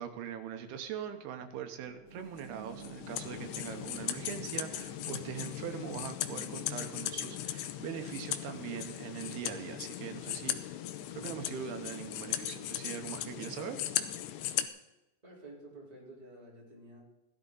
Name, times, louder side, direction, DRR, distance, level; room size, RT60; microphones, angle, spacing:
voice 1, 0.0-10.8 11.1-13.8, right 8 dB, 75° right, 6 dB, 2.7 m, -41 dB
sound 1, 1.0-12.1 12.5-12.6, right 6 dB, 35° right, 5.2 m, -55 dB
sound 2, 2.4-14.7, left 12 dB, 80° left, 2.5 m, -38 dB
voice 2, 15.2-17.0, right 1 dB, 10° right, -5 dB, 3.6 m, -51 dB
16.5 x 11.5 x 4.0 m, 0.97 s
omnidirectional pair, 5.1 m